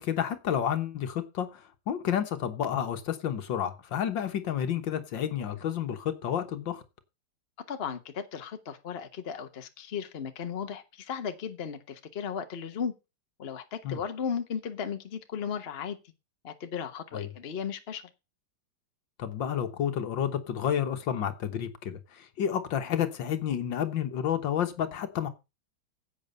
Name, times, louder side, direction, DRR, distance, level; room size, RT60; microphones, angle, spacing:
voice 1, 0.0-6.8 13.8-14.0 17.1-17.3 19.2-25.3, left 9 dB, 65° left, 1.8 m, -30 dB
voice 2, 7.7-12.9 13.4-16.0 16.4-18.1, left 7 dB, 40° left, 1.1 m, -35 dB
10.5 x 8.1 x 5.4 m
omnidirectional pair, 2.2 m